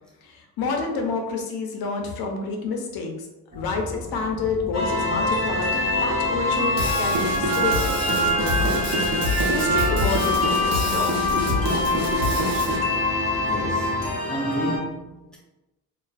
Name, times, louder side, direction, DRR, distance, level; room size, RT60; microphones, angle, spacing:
voice 1, 0.2-3.3 3.5-12.1, left 4 dB, 85° left, 0.6 m, -29 dB
sound 1, 3.5-14.1, right 1 dB, 35° right, 0.8 m, -37 dB
sound 2, 4.7-14.8, left 1 dB, 45° left, 0.6 m, -24 dB
Drum kit / Drum, 6.8-12.8, equal, 70° right, 0.8 m, -26 dB
voice 2, 13.4-15.4, right 1 dB, ahead, 0.4 m, -31 dB
2.4 x 2.3 x 2.3 m
cardioid pair, 135°, 35 cm